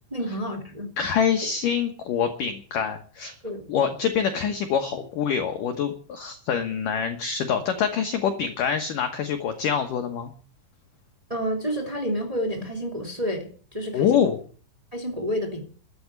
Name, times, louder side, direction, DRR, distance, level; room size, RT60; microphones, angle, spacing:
voice 1, 0.1-0.9 3.4-3.6 11.3-13.5 13.7-14.2 14.9-15.6, equal, 10° right, 3 dB, 2.1 m, -29 dB
voice 2, 1.0-3.4 3.7-10.3 13.9-14.4, left 7 dB, 80° left, 6 dB, 1.9 m, -25 dB
13.0 x 8.7 x 9.6 m, 0.43 s
omnidirectional pair, 5.7 m